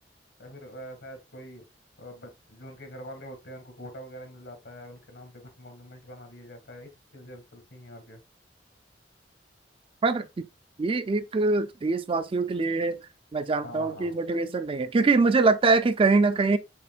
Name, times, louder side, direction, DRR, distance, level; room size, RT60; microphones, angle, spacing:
voice 1, 0.4-1.6 2.0-8.2 13.6-14.2, equal, 85° left, 2.0 m, -44 dB
voice 2, 10.0-10.5 10.8-13.0 13.3-16.6, right 3 dB, 30° right, 0.4 m, -23 dB
6.9 x 3.0 x 2.4 m
head